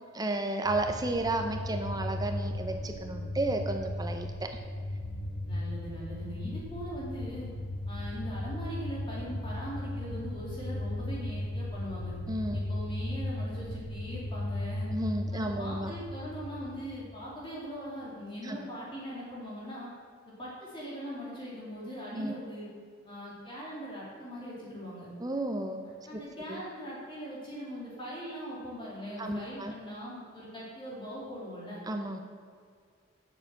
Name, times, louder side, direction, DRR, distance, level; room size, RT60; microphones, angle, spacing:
voice 1, 0.1-4.6 12.3-12.6 14.9-15.9 18.4-18.6 22.1-22.4 25.2-25.8 26.5-26.6 29.2-29.7 31.9-32.2, right 2 dB, 20° right, 5 dB, 0.6 m, -32 dB
sound 1, 0.6-17.5, left 1 dB, 75° left, 1.6 m, -36 dB
voice 2, 5.4-7.5 7.9-12.1 12.5-14.9 15.3-19.9 20.2-22.7 23.0-25.1 26.1-31.8, equal, 25° left, -6 dB, 2.5 m, -41 dB
7.7 x 6.7 x 7.3 m, 2.1 s
head